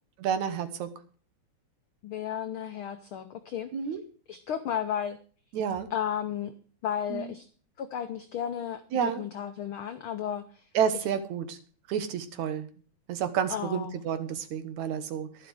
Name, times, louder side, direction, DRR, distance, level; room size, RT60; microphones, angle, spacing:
voice 1, 0.2-0.9 3.7-4.0 5.5-5.9 7.1-7.3 8.9-9.2 10.7-11.6 11.9-12.7 13.1-15.5, right 8 dB, 75° right, 10 dB, 2.5 m, -30 dB
voice 2, 2.0-3.7 4.3-5.2 5.9-6.5 6.8-7.5 7.8-10.4 13.5-13.9, left 9 dB, 80° left, 8 dB, 1.1 m, -33 dB
12.0 x 11.0 x 4.9 m, 0.41 s
omnidirectional pair, 3.4 m